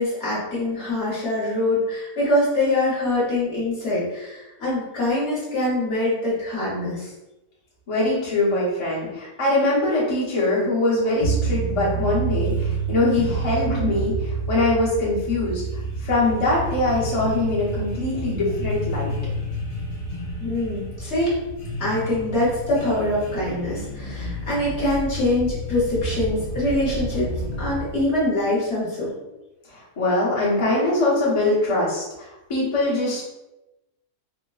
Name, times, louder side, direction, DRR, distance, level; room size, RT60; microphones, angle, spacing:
voice 1, 0.0-7.1 20.4-21.4 21.8-27.3 27.6-29.1, left 1 dB, 50° left, -7 dB, 1.3 m, -24 dB
voice 2, 7.9-15.6 16.0-19.1 29.7-33.2, left 2 dB, 30° left, -8 dB, 0.7 m, -22 dB
sound 1, 11.2-28.0, right 3 dB, 85° left, 1.2 m, -30 dB
sound 2, 22.1-28.5, left 1 dB, 80° right, 2.1 m, -34 dB
3.8 x 2.1 x 2.3 m, 0.97 s
omnidirectional pair, 1.6 m